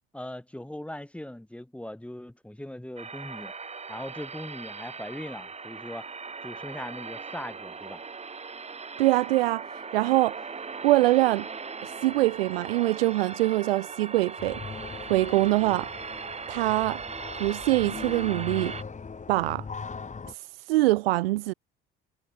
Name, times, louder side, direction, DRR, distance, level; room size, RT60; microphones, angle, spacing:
voice 1, 0.1-3.5 3.9-6.1 6.4-8.0, left 1 dB, 5° left, 1.7 m, -39 dB
sound 1, 3.0-18.8, right 5 dB, 20° right, 1.5 m, -39 dB
voice 2, 9.0-10.5 10.8-11.5 11.8-14.6 15.1-15.9 16.5-17.0 17.4-18.8 19.3-19.7 20.3-21.5, right 18 dB, 75° right, 0.5 m, -24 dB
sound 2, 14.4-20.3, left 5 dB, 25° left, 2.3 m, -40 dB
figure-of-eight pair, 55°, 29 cm